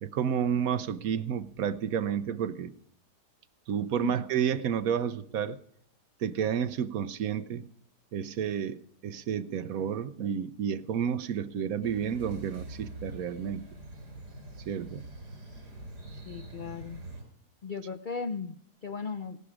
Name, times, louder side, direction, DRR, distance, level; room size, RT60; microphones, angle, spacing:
voice 1, 0.0-2.7 3.7-5.6 6.2-7.6 8.1-13.7 14.7-15.0, right 8 dB, 65° right, 13 dB, 1.1 m, -31 dB
sound 1, 11.8-17.2, right 2 dB, 80° right, 5.8 m, -44 dB
voice 2, 16.1-17.0 17.6-19.4, left 5 dB, 70° left, 11 dB, 0.4 m, -37 dB
17.0 x 12.0 x 4.9 m, 0.66 s
omnidirectional pair, 1.7 m